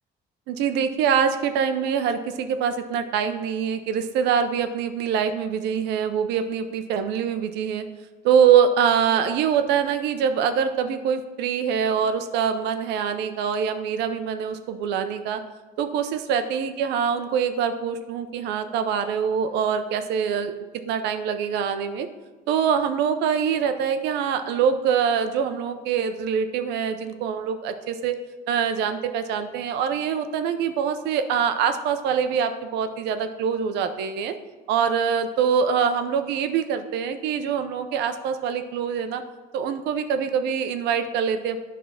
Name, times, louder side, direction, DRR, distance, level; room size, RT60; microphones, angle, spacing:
voice 1, 0.5-7.8 8.2-15.4 15.8-20.5 20.9-22.1 22.5-28.2 28.5-34.3 34.7-39.2 39.5-41.6, right 7 dB, 85° right, 9 dB, 0.7 m, -24 dB
9.4 x 3.6 x 5.8 m, 1.2 s
cardioid pair, 110°, 17 cm